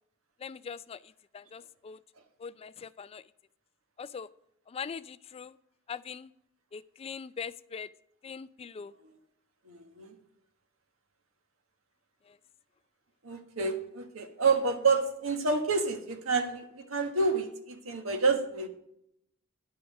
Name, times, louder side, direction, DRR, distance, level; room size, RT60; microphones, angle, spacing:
voice 1, 0.4-2.0 2.4-3.2 4.0-4.3 4.7-5.6 5.9-6.3 6.7-7.9 8.2-8.9 12.3-12.4, left 6 dB, 30° left, 17 dB, 0.3 m, -42 dB
voice 2, 9.6-10.1 13.2-18.7, right 4 dB, 90° right, 6 dB, 1.5 m, -29 dB
11.0 x 5.8 x 6.5 m, 0.74 s
head